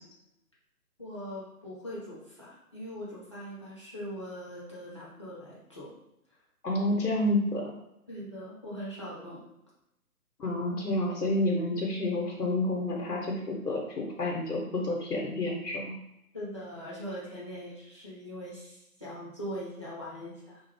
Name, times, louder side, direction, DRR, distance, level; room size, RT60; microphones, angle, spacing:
voice 1, 1.0-5.9 8.1-9.4 16.3-20.6, equal, 20° left, -8 dB, 0.5 m, -41 dB
voice 2, 6.6-7.7 10.4-15.9, left 1 dB, 85° left, -2 dB, 0.8 m, -29 dB
2.5 x 2.3 x 3.3 m, 0.87 s
figure-of-eight pair, 140°, 46 cm